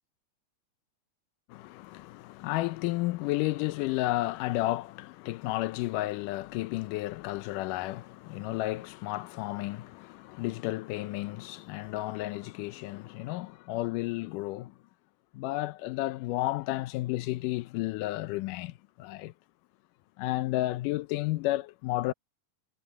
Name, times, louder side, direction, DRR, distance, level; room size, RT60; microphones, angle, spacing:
voice 1, 1.5-14.8 15.3-19.3 20.2-22.1, left 17 dB, 80° left, 2.1 m, -32 dB
omnidirectional pair, 3.9 m